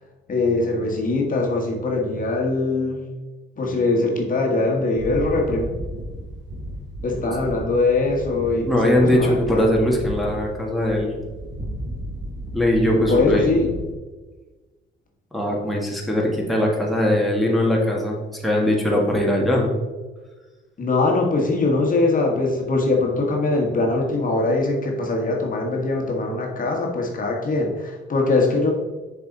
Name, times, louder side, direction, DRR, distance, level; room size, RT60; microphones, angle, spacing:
voice 1, 0.3-3.0 3.6-5.7 7.0-9.7 13.1-13.7 20.8-28.7, left 3 dB, 45° left, 0 dB, 1.5 m, -22 dB
sound 1, 4.9-13.9, right 1 dB, 65° right, 1.8 m, -34 dB
voice 2, 8.7-11.1 12.5-13.4 15.3-19.7, left 1 dB, ahead, -2 dB, 1.6 m, -20 dB
6.8 x 4.8 x 3.9 m, 1.3 s
cardioid pair, 90°, 20 cm